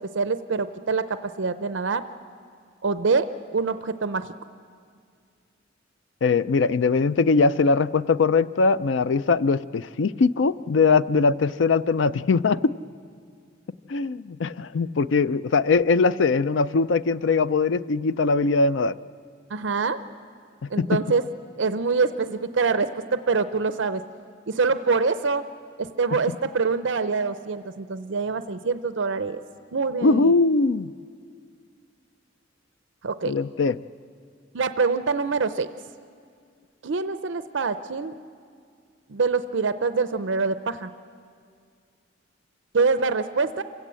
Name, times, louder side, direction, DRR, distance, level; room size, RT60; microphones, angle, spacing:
voice 1, 0.1-2.0 2.8-4.3 19.5-20.0 20.7-21.2 21.6-24.0 24.5-25.4 25.8-29.4 29.7-30.3 33.0-33.3 34.5-35.7 36.8-38.2 39.1-40.9 42.7-43.6, right 4 dB, 70° right, 11 dB, 0.6 m, -25 dB
voice 2, 6.2-12.7 13.9-19.0 20.6-21.0 26.1-26.2 30.0-30.9 33.2-33.8, left 4 dB, 75° left, 15 dB, 0.5 m, -21 dB
27.0 x 16.5 x 7.6 m, 2.2 s
head